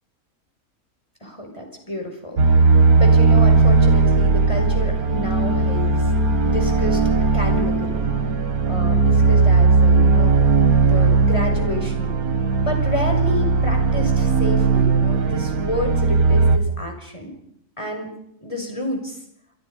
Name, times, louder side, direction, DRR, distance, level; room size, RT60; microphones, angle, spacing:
voice 1, 1.2-2.6 2.9-6.1 6.4-7.0 7.3-8.1 8.7-10.4 10.8-12.2 12.6-17.3 17.8-18.1 18.4-19.2, left 1 dB, 20° left, 3 dB, 6.2 m, -30 dB
sound 1, 2.4-16.6, right 4 dB, 80° right, 2.3 m, -17 dB
29.5 x 23.0 x 5.5 m, 0.75 s
omnidirectional pair, 1.5 m